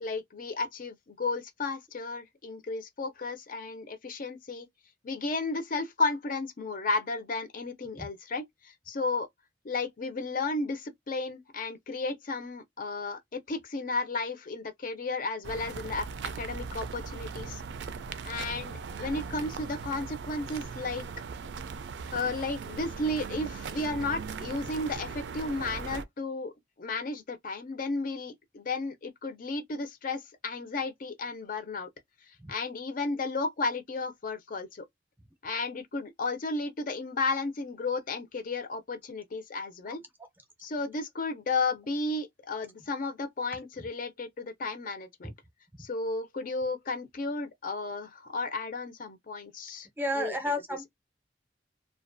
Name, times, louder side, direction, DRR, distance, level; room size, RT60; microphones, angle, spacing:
voice 1, 0.0-4.7 5.0-9.3 9.6-17.6 18.2-21.0 22.1-26.5 26.8-31.9 32.5-34.9 35.4-40.0 40.6-45.3 45.8-49.9 50.1-50.4 50.7-50.8, left 3 dB, 50° left, 0.5 m, -33 dB
sound 1, 15.4-26.0, right 5 dB, 80° right, 0.3 m, -39 dB
voice 2, 50.0-50.9, left 1 dB, 10° right, 0.5 m, -31 dB
2.4 x 2.2 x 2.4 m
head